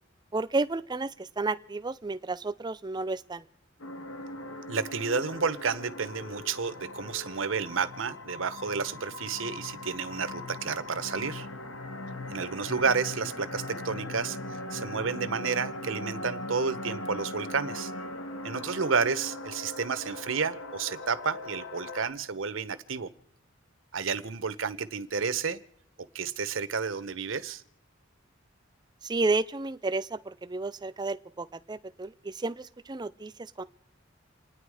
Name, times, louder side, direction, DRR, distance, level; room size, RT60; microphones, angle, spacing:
voice 1, 0.3-3.5 29.0-33.6, right 3 dB, 20° right, 13 dB, 0.5 m, -32 dB
sound 1, 3.8-22.1, left 2 dB, 85° left, 1.3 m, -40 dB
voice 2, 4.7-11.5 12.3-17.9 18.4-23.1 23.9-25.6 26.1-27.6, right 5 dB, 70° right, 14 dB, 0.9 m, -31 dB
29.0 x 9.8 x 4.9 m, 0.77 s
head